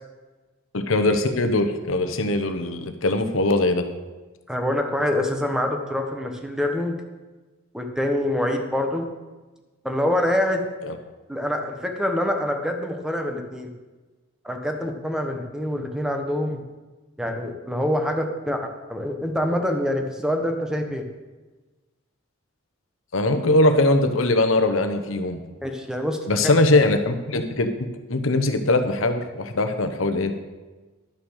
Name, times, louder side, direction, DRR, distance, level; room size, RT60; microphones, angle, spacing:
voice 1, 0.7-3.9 10.9-11.0 23.1-25.4 26.3-27.7 28.1-30.3, left 2 dB, 75° left, 8 dB, 1.0 m, -21 dB
voice 2, 4.5-6.9 7.7-9.1 9.8-10.6 11.3-13.7 14.4-16.6 17.2-18.6 18.9-21.0 25.6-26.4, left 1 dB, 5° right, 4 dB, 1.1 m, -25 dB
11.5 x 6.2 x 6.5 m, 1.2 s
head